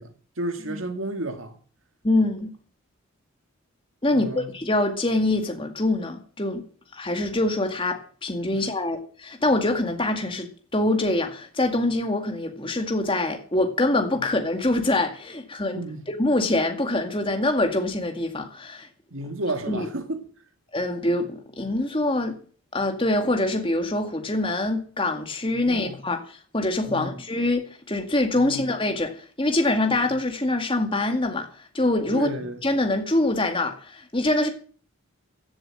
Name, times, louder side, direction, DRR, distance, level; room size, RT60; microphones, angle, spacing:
voice 1, 0.0-1.6 4.1-4.5 8.5-8.6 14.2-14.3 15.7-16.0 19.1-20.2 25.5-26.0 26.9-27.3 28.3-28.7 32.1-32.6, right 1 dB, 75° right, 2.1 m, -32 dB
voice 2, 2.0-2.5 4.0-6.6 6.9-15.8 16.1-18.9 19.7-19.9 20.7-22.4 22.7-32.3 32.6-34.5, left 2 dB, 25° left, 2.1 m, -24 dB
15.5 x 7.8 x 7.9 m
head